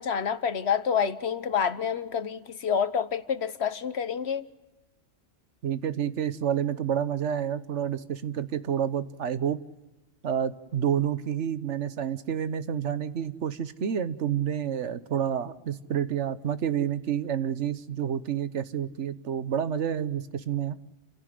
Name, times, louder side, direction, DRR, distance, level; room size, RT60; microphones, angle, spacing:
voice 1, 0.0-4.4, left 7 dB, 65° left, 13 dB, 1.2 m, -28 dB
voice 2, 5.6-9.6 10.2-20.8, right 9 dB, 80° right, 13 dB, 1.3 m, -29 dB
29.0 x 16.5 x 7.6 m, 1.1 s
omnidirectional pair, 1.2 m